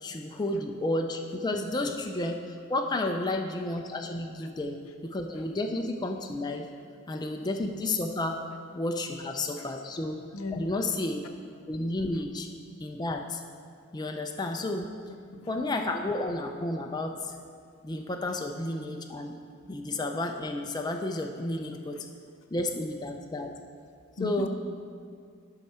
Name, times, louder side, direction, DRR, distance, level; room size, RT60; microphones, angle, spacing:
voice 1, 0.0-6.7 7.1-8.4 8.7-10.2 10.5-11.2 11.7-12.5 12.8-13.4 13.9-15.0 15.5-17.4 17.8-19.4 19.6-22.1 22.5-23.5 24.2-24.5, left 2 dB, 20° left, 3 dB, 0.4 m, -31 dB
voice 2, 10.3-11.1 15.4-15.5 15.8-15.9 24.2-24.5, left 3 dB, 80° left, 6 dB, 0.7 m, -38 dB
11.5 x 5.4 x 4.3 m, 2.2 s
head